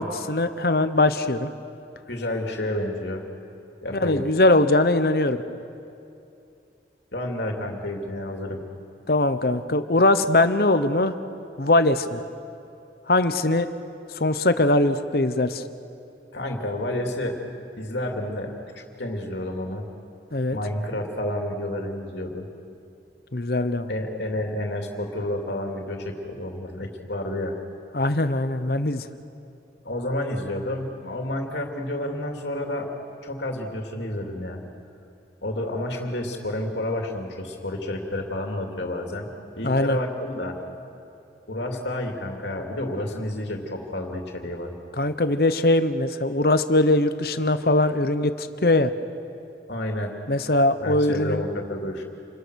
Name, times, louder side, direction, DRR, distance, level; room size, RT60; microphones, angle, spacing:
voice 1, 0.0-1.5 3.9-5.4 9.1-11.1 11.6-12.2 13.1-13.7 14.2-15.6 20.3-20.6 23.3-23.9 27.9-29.1 39.6-40.0 45.0-48.9 50.3-51.4, left 2 dB, 55° left, 11 dB, 1.0 m, -21 dB
voice 2, 2.1-3.2 3.8-4.2 7.1-8.6 16.3-17.4 17.8-19.8 20.5-22.5 23.9-27.6 29.8-32.9 33.2-34.6 35.4-39.3 39.6-40.6 41.5-44.7 49.7-50.1 50.8-52.0, left 1 dB, 75° left, 2 dB, 2.8 m, -30 dB
28.5 x 21.5 x 6.5 m, 2.7 s
head